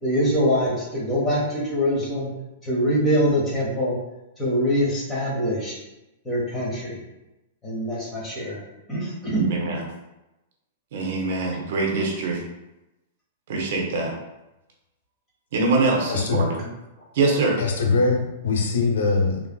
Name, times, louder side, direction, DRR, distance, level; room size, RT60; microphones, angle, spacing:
voice 1, 0.0-2.3 2.6-3.9 4.4-5.8 6.2-7.0 7.6-8.6 8.9-9.4, equal, 15° left, -6 dB, 1.4 m, -24 dB
voice 2, 9.3-9.8 10.9-12.4 13.5-14.1 15.5-16.7 17.1-17.6, right 3 dB, 65° right, 0 dB, 0.8 m, -23 dB
voice 3, 16.1-16.4 17.6-19.4, left 4 dB, 80° left, 2 dB, 0.6 m, -22 dB
3.2 x 2.4 x 2.3 m, 0.97 s
hypercardioid pair, 130°, 0 cm